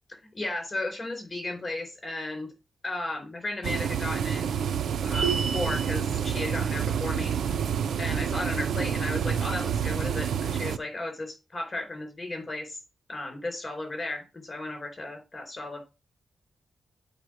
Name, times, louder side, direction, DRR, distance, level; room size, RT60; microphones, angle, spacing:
voice 1, 0.3-2.5 2.8-4.5 5.0-7.3 7.6-7.7 8.0-12.8 13.1-15.8, left 2 dB, 30° left, 3 dB, 4.3 m, -34 dB
sound 1, 3.6-10.8, right 8 dB, 85° right, 0.5 m, -28 dB
sound 2, 5.1-6.0, right 5 dB, 60° right, 2.4 m, -30 dB
8.2 x 4.1 x 6.3 m, 0.27 s
wide cardioid pair, 105°, 0 cm